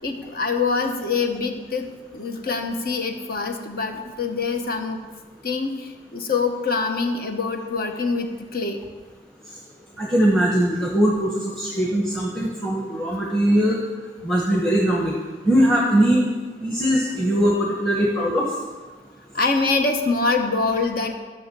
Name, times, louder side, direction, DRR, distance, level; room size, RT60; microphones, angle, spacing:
voice 1, 0.0-5.0 5.4-8.8 19.3-21.2, left 4 dB, 55° left, 5 dB, 1.0 m, -25 dB
voice 2, 10.0-13.8 14.2-15.1 15.4-16.2 16.6-18.4, equal, 5° left, -3 dB, 1.1 m, -20 dB
13.0 x 6.2 x 6.9 m, 1.4 s
head